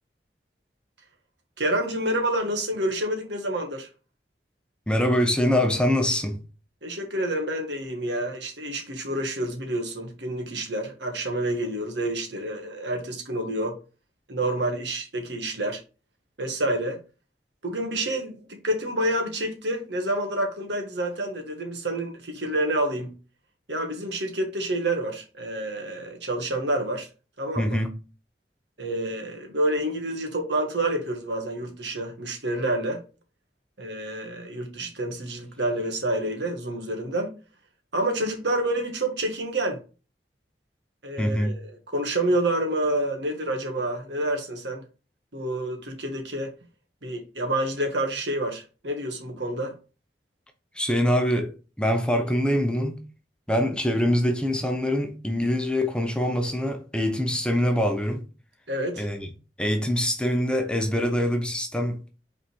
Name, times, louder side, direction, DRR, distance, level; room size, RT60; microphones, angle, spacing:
voice 1, 1.6-3.9 6.8-13.8 14.3-15.8 16.4-17.0 17.6-23.1 23.7-27.1 27.4-27.8 28.8-33.0 33.8-37.4 37.9-39.8 41.0-44.8 45.3-46.5 47.0-49.7 58.7-59.1, right 1 dB, 85° right, 1.8 m, -28 dB
voice 2, 4.9-6.4 27.6-27.9 41.2-41.5 50.8-53.0 53.5-58.2 59.0-59.3 59.6-62.0, equal, 5° left, 0.9 m, -24 dB
5.7 x 4.2 x 4.6 m
head